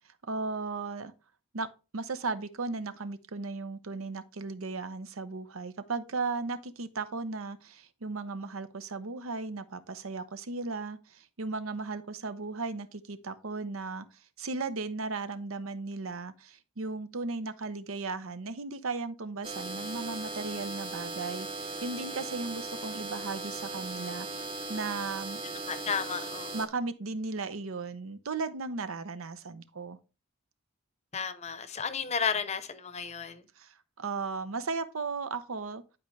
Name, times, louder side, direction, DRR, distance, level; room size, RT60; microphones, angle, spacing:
voice 1, 0.3-1.1 1.5-1.7 1.9-14.1 14.4-25.4 26.5-30.0 33.6-35.8, right 3 dB, 85° right, 0.8 m, -36 dB
sound 1, 19.4-26.7, right 2 dB, 25° right, 0.8 m, -38 dB
voice 2, 25.7-26.6 31.1-33.4, left 6 dB, 35° left, 0.7 m, -33 dB
11.0 x 4.8 x 3.2 m
head